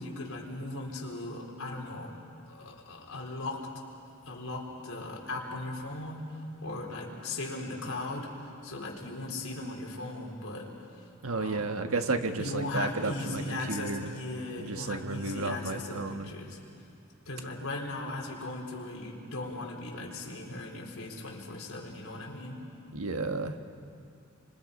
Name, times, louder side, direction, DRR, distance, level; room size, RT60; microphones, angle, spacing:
voice 1, 0.0-2.2 2.5-3.7 4.2-11.0 11.4-11.8 12.4-16.6 17.3-22.7, left 2 dB, 80° left, -1 dB, 4.2 m, -38 dB
voice 2, 11.2-14.1 14.6-16.3 22.9-23.6, right 3 dB, 75° right, 6 dB, 1.4 m, -32 dB
29.5 x 25.5 x 5.4 m, 2.5 s
head